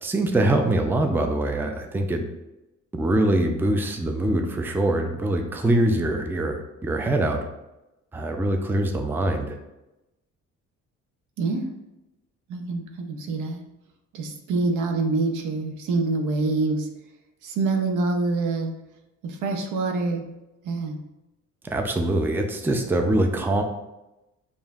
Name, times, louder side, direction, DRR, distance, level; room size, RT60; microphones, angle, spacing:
voice 1, 0.0-2.2 2.9-7.5 8.1-9.6 21.6-23.6, right 1 dB, 5° right, 4 dB, 0.4 m, -23 dB
voice 2, 11.4-11.7 12.5-13.6 14.1-16.9 17.4-18.7 19.2-20.2 20.6-21.0, right 3 dB, 80° right, 4 dB, 0.7 m, -26 dB
5.4 x 2.6 x 2.4 m, 0.96 s
cardioid pair, 90°, 30 cm